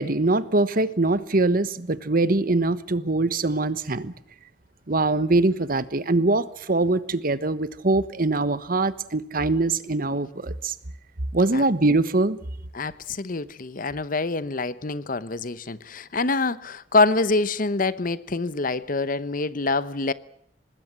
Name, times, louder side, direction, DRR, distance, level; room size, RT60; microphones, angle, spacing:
voice 1, 0.0-4.1 4.9-10.7 11.3-12.4, right 2 dB, 50° right, 1.2 m, -23 dB
voice 2, 12.7-20.1, left 3 dB, 50° left, 0.9 m, -25 dB
25.0 x 20.0 x 7.5 m
head